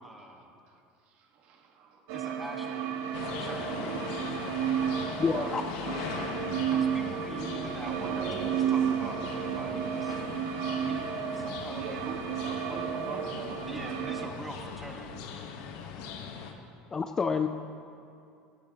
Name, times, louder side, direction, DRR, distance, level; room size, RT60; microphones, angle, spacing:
voice 1, 0.0-0.5 2.1-4.4 6.7-10.2 10.6-12.0 12.7-12.8 13.7-15.5, equal, 5° right, 0 dB, 1.3 m, -44 dB
voice 2, 0.7-2.5 4.3-5.7 10.5-10.7 11.0-13.5 15.9-16.7, right 5 dB, 50° right, 3 dB, 1.4 m, -46 dB
sound 1, 2.1-14.3, right 8 dB, 70° right, 1.0 m, -32 dB
sound 2, 3.1-16.5, left 6 dB, 70° left, 1.1 m, -40 dB
voice 3, 5.2-5.6 16.9-17.5, left 5 dB, 20° left, 8 dB, 0.4 m, -28 dB
15.5 x 14.5 x 2.9 m, 2.6 s
cardioid pair, 150°, 3 cm